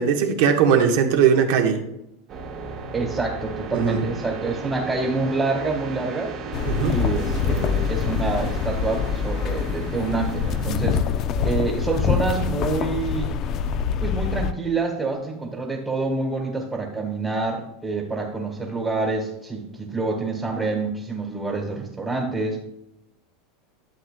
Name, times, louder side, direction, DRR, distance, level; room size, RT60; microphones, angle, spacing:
voice 1, 0.0-1.8 3.7-4.0 6.7-7.0, right 7 dB, 70° right, 4 dB, 1.2 m, -19 dB
sound 1, 2.3-10.7, right 4 dB, 40° right, 1.3 m, -35 dB
voice 2, 2.9-6.3 6.8-11.0 11.4-13.3 14.0-22.6, right 3 dB, 15° right, -1 dB, 1.4 m, -27 dB
sound 2, 6.5-14.5, left 6 dB, 40° left, 0.5 m, -25 dB
11.5 x 7.6 x 2.2 m, 0.83 s
supercardioid pair, 150°, 0 cm